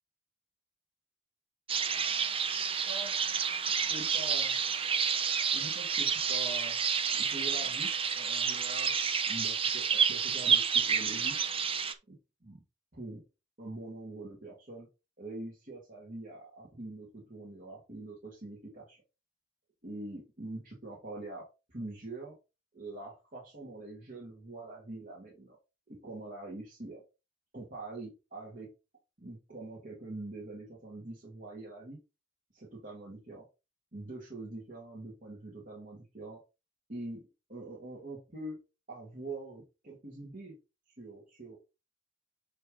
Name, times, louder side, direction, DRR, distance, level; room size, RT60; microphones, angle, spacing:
sound 1, 1.7-11.9, right 6 dB, 30° right, 0.7 m, -29 dB
voice 1, 2.9-3.2 3.7-4.5 5.5-6.8 7.1-8.9 9.3-11.4 12.1-12.2 12.4-12.6 12.9-13.2 13.6-14.9 15.2-19.0 19.8-22.4 22.7-25.6 25.9-27.0 27.5-28.7 29.2-32.0 32.5-33.5 33.9-36.4 36.9-37.2 37.5-38.6 38.9-40.5 40.9-41.6, right 2 dB, 50° right, -4 dB, 2.2 m, -44 dB
8.9 x 3.3 x 3.9 m, 0.28 s
head